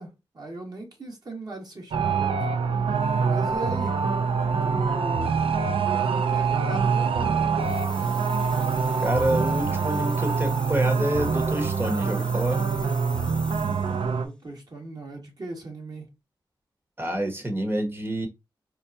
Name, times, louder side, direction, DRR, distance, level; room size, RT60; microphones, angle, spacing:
voice 1, 0.0-2.4 3.2-4.0 4.6-5.3 6.0-7.7 13.4-16.1, right 2 dB, 45° right, 1.7 m, -38 dB
sound 1, 1.9-14.3, right 5 dB, 85° right, 0.5 m, -25 dB
sound 2, 7.6-14.1, left 1 dB, 10° left, 0.6 m, -41 dB
voice 2, 9.0-12.7 17.0-18.3, right 1 dB, 25° right, 1.3 m, -27 dB
4.4 x 2.3 x 2.7 m
cardioid pair, 60°, 9 cm